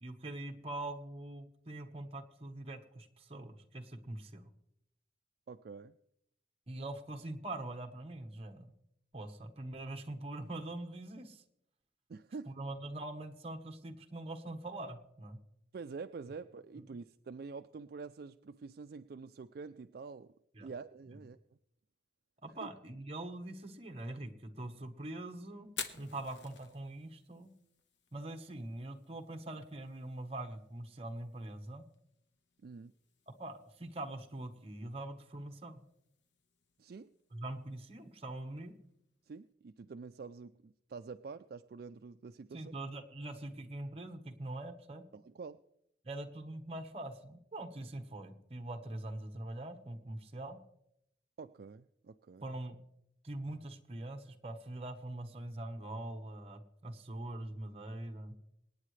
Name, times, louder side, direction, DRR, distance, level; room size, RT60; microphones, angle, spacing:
voice 1, 0.0-4.4 6.7-8.7 9.1-11.4 12.5-15.4 20.5-20.7 22.4-27.5 28.1-31.8 33.3-35.8 37.3-38.7 42.5-45.0 46.0-50.6 52.4-52.8 53.2-58.3, right 1 dB, 35° right, 5 dB, 1.2 m, -43 dB
voice 2, 5.5-6.0 12.1-12.5 15.7-20.3 20.6-21.4 22.6-22.7 32.6-32.9 36.8-37.1 39.3-42.8 45.1-45.6 51.4-52.5, right 4 dB, 55° right, 9 dB, 0.4 m, -47 dB
Fire, 25.6-39.5, left 6 dB, 85° left, 1.2 m, -53 dB
25.5 x 9.4 x 3.3 m, 0.79 s
head